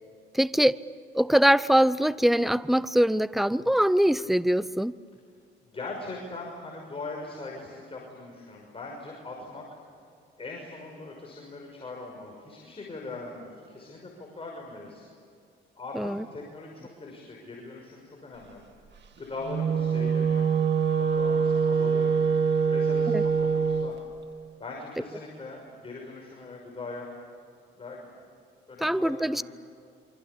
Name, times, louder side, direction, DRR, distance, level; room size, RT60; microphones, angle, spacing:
voice 1, 0.3-0.8 1.1-4.9 15.9-16.2 23.1-23.2 28.8-29.4, equal, ahead, 17 dB, 0.7 m, -23 dB
voice 2, 5.6-9.6 10.4-15.0 15.8-18.6 19.2-20.5 21.0-22.1 22.6-24.0 24.6-27.1 27.7-28.1 28.7-29.4, left 3 dB, 30° left, -1 dB, 6.2 m, -40 dB
Wind instrument woodwind instrument, 19.4-23.9, right 6 dB, 60° right, 2.4 m, -24 dB
27.5 x 25.0 x 8.6 m, 2.3 s
cardioid pair, 90°, 20 cm